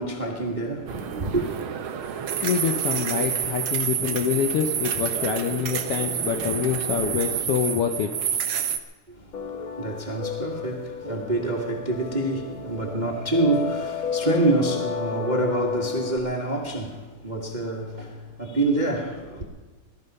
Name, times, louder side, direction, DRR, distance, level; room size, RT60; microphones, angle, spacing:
voice 1, 0.0-1.5 9.1-19.4, right 2 dB, 25° right, 1.0 m, -27 dB
sound 1, 0.9-8.8, right 8 dB, 70° right, 1.2 m, -28 dB
voice 2, 2.4-8.1, left 8 dB, 70° left, 1.4 m, -26 dB
sound 2, 9.3-16.2, left 6 dB, 55° left, 1.5 m, -31 dB
19.5 x 13.0 x 5.4 m
omnidirectional pair, 3.5 m